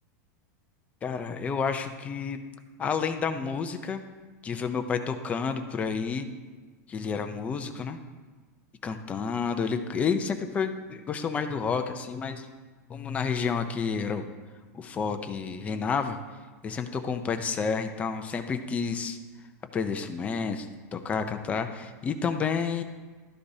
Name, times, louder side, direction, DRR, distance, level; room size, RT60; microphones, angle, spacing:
voice 1, 1.0-2.4 2.8-4.0 4.4-6.3 6.9-8.0 8.8-12.5 12.9-14.3 14.7-16.2 16.6-19.2 19.7-20.7 20.9-22.8, left 5 dB, 15° left, 7 dB, 0.5 m, -30 dB
13.0 x 9.9 x 2.7 m, 1.4 s
supercardioid pair, 165°, 9 cm